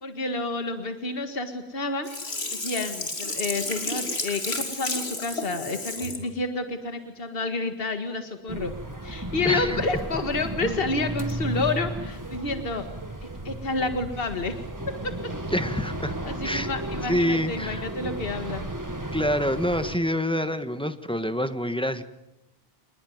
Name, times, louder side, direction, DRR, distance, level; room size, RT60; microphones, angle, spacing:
voice 1, 0.0-2.1 2.5-8.7 9.0-12.8 13.4-14.5 15.0-15.1 16.2-18.7, left 3 dB, 65° left, 7 dB, 2.0 m, -29 dB
Sink (filling or washing), 2.0-6.2 6.7-6.8, left 2 dB, 85° left, 3.5 m, -32 dB
sound 1, 8.5-20.0, right 1 dB, 20° right, 1.6 m, -34 dB
voice 2, 9.4-9.8 15.5-16.1 16.4-16.7 17.1-17.9 19.1-22.0, equal, 5° left, 10 dB, 1.4 m, -26 dB
27.5 x 20.0 x 9.5 m, 0.93 s
omnidirectional pair, 1.1 m